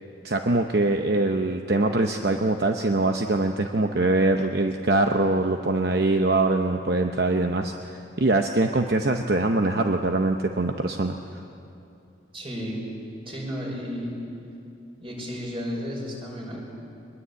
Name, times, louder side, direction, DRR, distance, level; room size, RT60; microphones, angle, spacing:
voice 1, 0.2-11.2, right 2 dB, 55° right, 4 dB, 0.9 m, -23 dB
voice 2, 12.3-12.8 13.3-14.1 15.0-16.6, equal, 30° right, -1 dB, 5.5 m, -33 dB
23.0 x 21.5 x 8.3 m, 2.7 s
head